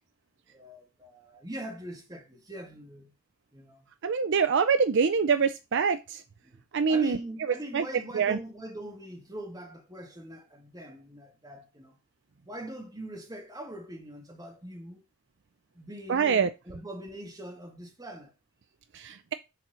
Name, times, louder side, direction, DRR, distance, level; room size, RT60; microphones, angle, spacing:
voice 1, 0.5-3.1 3.5-3.9 6.4-6.6 6.9-12.0 12.4-15.0 15.7-18.3, right 1 dB, 15° right, 1.7 m, -42 dB
voice 2, 4.0-6.2 6.7-7.2 7.7-7.8 8.1-8.4 16.1-16.5 18.9-19.3, right 6 dB, 55° right, 0.5 m, -25 dB
7.1 x 4.4 x 6.2 m
head